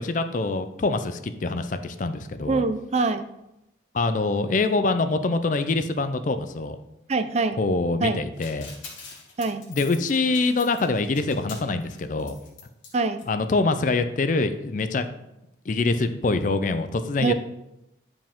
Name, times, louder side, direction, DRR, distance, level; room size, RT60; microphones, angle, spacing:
voice 1, 0.0-2.6 3.9-6.8 7.6-8.7 9.7-12.4 13.3-15.1 15.7-17.3, left 3 dB, 40° left, 10 dB, 0.4 m, -25 dB
voice 2, 2.5-3.3 7.1-7.6 8.0-8.2 9.4-9.7 12.9-13.2 17.2-17.3, right 3 dB, 35° right, 10 dB, 0.3 m, -24 dB
sound 1, 8.4-12.9 13.2-13.3 13.5-13.6, left 5 dB, 85° left, 1.8 m, -44 dB
9.2 x 5.0 x 3.6 m, 0.89 s
head